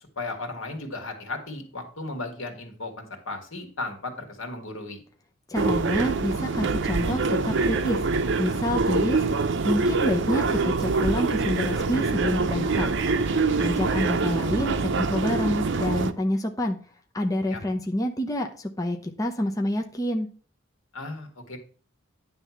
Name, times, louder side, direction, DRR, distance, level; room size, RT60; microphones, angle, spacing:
voice 1, 0.2-5.0 17.5-17.6 20.9-21.6, left 2 dB, 80° left, 4 dB, 2.1 m, -35 dB
voice 2, 5.5-8.0 8.4-9.2 9.6-13.0 13.6-16.8 17.1-20.3, left 1 dB, 15° left, 2 dB, 0.8 m, -27 dB
sound 1, 5.5-16.1, right 3 dB, 65° right, 0.7 m, -25 dB
10.0 x 3.5 x 7.1 m, 0.41 s
head